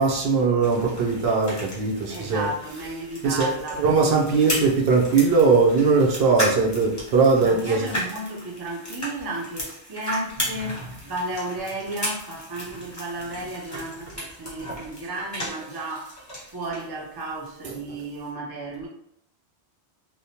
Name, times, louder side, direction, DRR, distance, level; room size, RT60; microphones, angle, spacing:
voice 1, 0.0-2.5 3.2-3.5 3.8-7.8 17.6-18.0, right 4 dB, 70° right, 0 dB, 0.8 m, -20 dB
sound 1, 0.6-16.9 17.2-18.3, equal, 20° left, 0.8 m, -35 dB
voice 2, 2.1-3.9 4.4-4.7 7.4-16.2 16.5-18.9, right 1 dB, 40° right, -1 dB, 0.3 m, -33 dB
3.0 x 2.0 x 2.7 m, 0.72 s
omnidirectional pair, 1.1 m